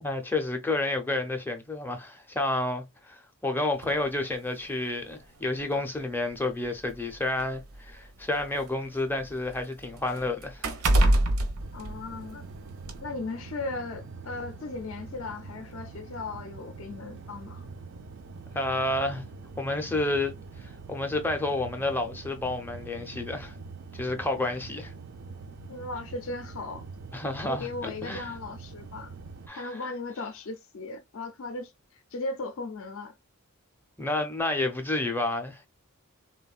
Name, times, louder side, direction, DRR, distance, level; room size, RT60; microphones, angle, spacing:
voice 1, 0.0-10.7 18.5-19.2 19.6-20.3 20.6-23.5 23.9-24.9 27.1-28.3 29.5-29.8 34.0-35.7, left 2 dB, 10° left, 0.5 m, -30 dB
sound 1, 3.8-4.0 5.0-5.1 5.6-5.7 6.7-8.6 9.0-12.5 12.8-13.0, right 1 dB, 90° right, 0.7 m, -26 dB
sound 2, 11.6-29.5, right 4 dB, 55° right, 0.4 m, -44 dB
voice 2, 11.7-12.4 13.0-17.7 25.7-26.8 27.5-29.2 29.5-33.1, left 3 dB, 65° left, 0.5 m, -37 dB
3.4 x 2.2 x 2.3 m
head